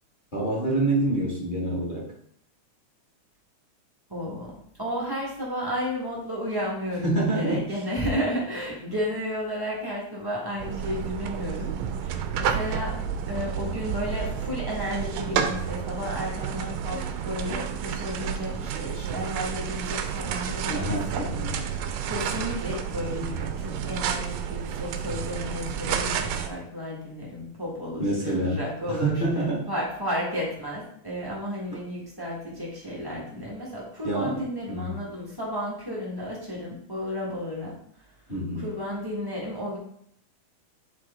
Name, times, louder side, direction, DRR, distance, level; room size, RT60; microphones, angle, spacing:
voice 1, 0.3-2.1 7.0-7.7 20.7-21.6 28.0-28.6 28.9-29.7 34.0-35.0 38.3-38.7, right 2 dB, 20° left, -5 dB, 1.6 m, -27 dB
voice 2, 4.1-4.5 4.8-11.7 12.0-13.0 13.3-21.2 22.0-29.2 29.7-37.7 38.5-39.8, equal, 35° right, -5 dB, 0.3 m, -32 dB
sound 1, 10.6-26.5, right 8 dB, 75° right, 1.6 m, -30 dB
8.9 x 4.1 x 3.6 m, 0.68 s
omnidirectional pair, 3.5 m